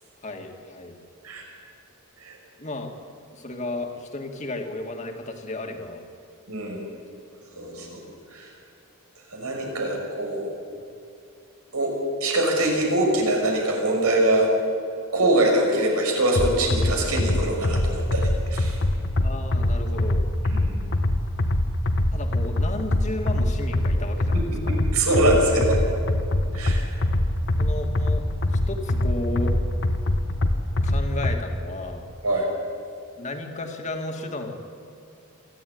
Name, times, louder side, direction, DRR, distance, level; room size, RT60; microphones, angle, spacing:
voice 1, 0.2-1.0 2.6-2.9 3.3-6.0 7.5-8.2 9.6-9.8 19.2-20.3 22.1-24.9 27.6-29.6 30.8-32.1 33.2-34.6, left 2 dB, 30° left, 3 dB, 2.2 m, -34 dB
voice 2, 6.5-6.8 7.6-8.0 8.3-8.5 9.3-10.4 11.7-11.9 12.2-14.5 15.1-18.8 20.5-20.8 24.3-25.8 26.5-26.9 32.2-32.5, right 1 dB, 90° right, 1 dB, 5.8 m, -23 dB
sound 1, 16.3-31.4, left 1 dB, 55° left, 1.5 m, -23 dB
27.0 x 12.0 x 9.5 m, 2.5 s
head